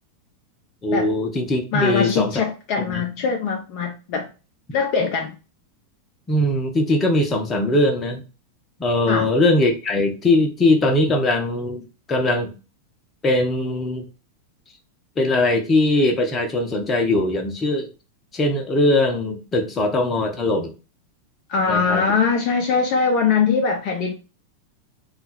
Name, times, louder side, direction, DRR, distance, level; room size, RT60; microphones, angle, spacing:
voice 1, 0.8-2.3 2.9-3.0 6.3-8.2 8.8-11.8 12.1-12.5 13.2-14.0 15.2-17.9 18.3-20.7 21.7-22.0, left 2 dB, 20° left, 0.9 m, -20 dB
voice 2, 1.7-4.3 4.7-5.4 9.1-9.3 21.5-24.1, left 5 dB, 45° left, 0.6 m, -22 dB
3.8 x 2.4 x 4.1 m
figure-of-eight pair, 90°, 0 cm